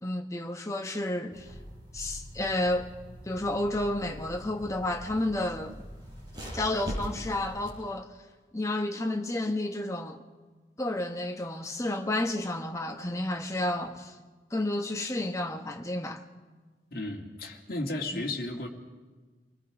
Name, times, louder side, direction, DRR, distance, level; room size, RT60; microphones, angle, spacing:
voice 1, 0.0-1.5 1.9-2.9 3.2-5.7 6.5-8.1 8.5-10.2 10.8-14.1 14.5-16.2 18.1-18.2, left 1 dB, 15° left, 1.1 m, -31 dB
sound 1, 1.3-7.7, equal, 25° right, 6.9 m, -42 dB
voice 2, 16.9-18.7, left 2 dB, 55° left, 2.3 m, -34 dB
27.5 x 20.0 x 4.9 m
head